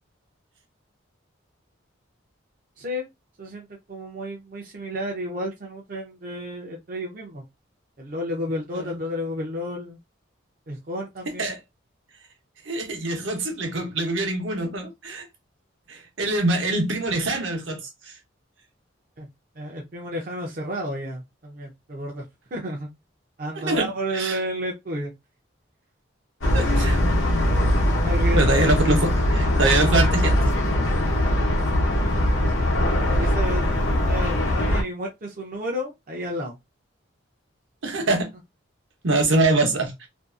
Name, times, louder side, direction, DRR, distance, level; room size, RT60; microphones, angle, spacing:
voice 1, 3.4-7.4 8.0-10.0 10.7-11.5 19.2-19.3 19.6-22.2 22.5-22.9 23.4-25.1 27.8-28.5 32.4-36.6, equal, 45° right, 0.5 m, -32 dB
voice 2, 12.7-15.3 15.9-17.8 23.6-23.9 24.1-24.4 26.5-27.0 28.4-30.4 37.8-38.3 39.0-40.1, right 2 dB, 70° right, 0.8 m, -24 dB
sound 1, 26.4-34.8, left 1 dB, 85° left, 0.8 m, -21 dB
2.6 x 2.3 x 2.3 m
head